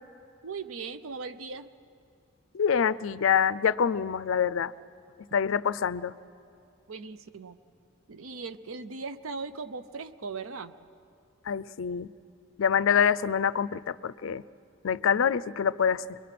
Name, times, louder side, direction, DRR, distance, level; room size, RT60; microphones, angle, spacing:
voice 1, 0.4-1.7 6.9-7.6 8.1-10.7, right 4 dB, 85° right, 11 dB, 0.6 m, -38 dB
voice 2, 2.5-4.7 5.3-6.1 11.5-12.1 12.6-14.4 14.8-16.2, left 7 dB, 75° left, 18 dB, 0.4 m, -26 dB
23.5 x 22.5 x 5.9 m, 2.6 s
head